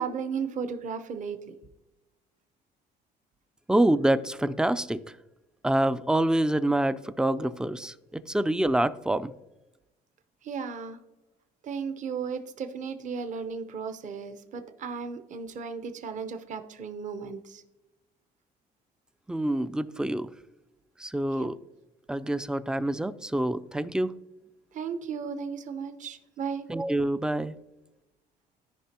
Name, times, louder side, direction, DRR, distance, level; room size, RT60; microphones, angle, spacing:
voice 1, 0.0-1.5 10.4-11.0 11.6-17.6 21.4-21.5 24.7-26.7, right 6 dB, 45° right, 0.8 m, -35 dB
voice 2, 3.7-5.0 5.6-9.3 19.3-20.3 21.0-21.6 22.1-24.1 26.7-27.5, right 1 dB, 5° right, 0.3 m, -26 dB
13.5 x 5.1 x 2.9 m
cardioid pair, 110°, 17 cm